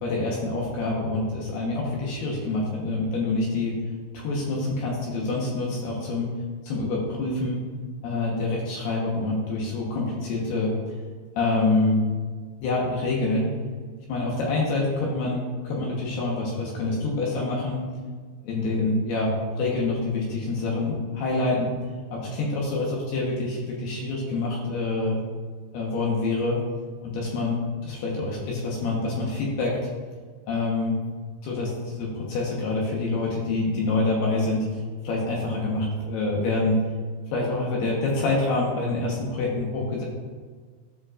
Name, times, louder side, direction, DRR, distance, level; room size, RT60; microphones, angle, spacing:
voice 1, 0.0-3.7 4.1-6.3 6.6-7.6 8.0-11.0 11.4-12.1 12.6-13.5 14.1-17.8 18.4-21.7 22.1-25.2 25.7-26.6 27.0-29.9 30.5-31.0 31.4-34.8 35.0-36.8 37.3-40.0, left 2 dB, 70° left, -3 dB, 2.6 m, -26 dB
14.0 x 5.3 x 2.5 m, 1.5 s
omnidirectional pair, 5.9 m